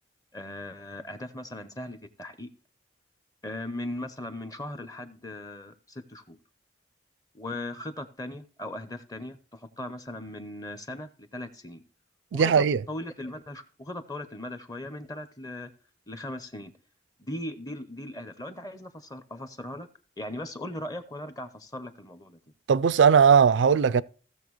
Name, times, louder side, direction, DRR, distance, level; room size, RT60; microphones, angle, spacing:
voice 1, 0.3-2.5 3.4-6.4 7.3-11.8 12.3-15.7 16.1-16.7 17.2-19.9 20.2-22.4, left 1 dB, 20° left, 0.7 m, -38 dB
voice 2, 12.3-12.8 22.7-24.0, right 6 dB, 75° right, 0.4 m, -19 dB
16.0 x 6.7 x 3.1 m
head